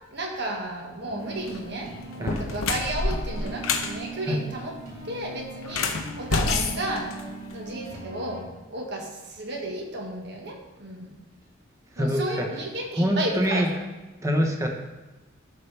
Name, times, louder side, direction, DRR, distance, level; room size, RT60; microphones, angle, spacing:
voice 1, 0.1-4.7 5.0-7.1 7.5-11.1 12.0-13.6, right 1 dB, 55° right, 0 dB, 1.5 m, -33 dB
sound 1, 1.1-8.4, right 2 dB, 70° right, 2.7 m, -40 dB
sound 2, 1.3-1.6 2.1-3.9 5.6-7.7, left 4 dB, 85° left, 0.9 m, -28 dB
voice 2, 12.0-12.5 13.0-13.7 14.2-14.7, equal, 15° right, 2 dB, 1.0 m, -24 dB
12.0 x 5.6 x 3.4 m, 1.1 s
head